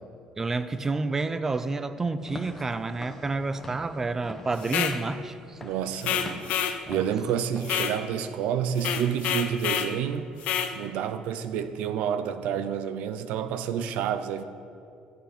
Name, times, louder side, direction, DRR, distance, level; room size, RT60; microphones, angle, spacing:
voice 1, 0.4-5.6 6.9-7.0, right 3 dB, 20° right, 0.6 m, -29 dB
Walk footsteps / Siren, 2.2-7.8, left 1 dB, 10° left, 1.5 m, -44 dB
sound 1, 4.6-5.0 6.0-6.8 7.6-8.0 8.8-9.9 10.4-10.7, left 9 dB, 70° left, 0.9 m, -28 dB
voice 2, 5.6-14.4, right 8 dB, 80° right, 0.8 m, -29 dB
15.5 x 14.0 x 4.3 m
cardioid pair, 135°, 2 cm